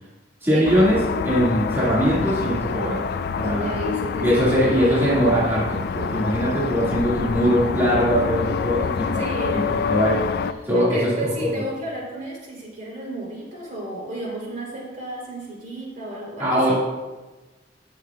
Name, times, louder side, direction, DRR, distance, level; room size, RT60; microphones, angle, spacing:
voice 1, 0.4-3.0 3.4-3.7 4.2-9.2 9.5-10.2 10.6-11.5 16.4-16.8, equal, 15° right, -9 dB, 1.8 m, -21 dB
sound 1, 0.7-10.5, left 6 dB, 60° left, 0.3 m, -27 dB
sound 2, 1.7-3.2 3.7-7.7 8.2-9.7, left 1 dB, 80° left, 1.8 m, -42 dB
voice 2, 3.4-5.1 9.1-10.0 10.7-16.8, right 1 dB, 50° right, -3 dB, 3.0 m, -32 dB
16.5 x 6.4 x 2.3 m, 1.2 s
head